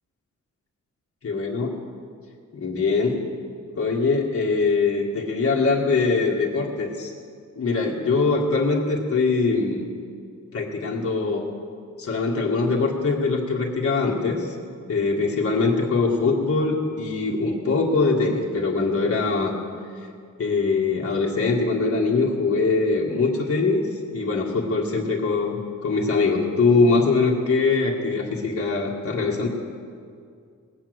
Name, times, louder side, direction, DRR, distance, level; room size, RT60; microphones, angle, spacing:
voice 1, 1.2-1.7 2.5-3.2 3.8-7.1 7.5-9.8 10.5-11.4 12.0-14.6 14.9-19.5 20.4-23.8 24.1-29.5, left 4 dB, 50° left, -2 dB, 1.8 m, -22 dB
19.5 x 8.6 x 7.8 m, 2.2 s
wide cardioid pair, 175°, 30 cm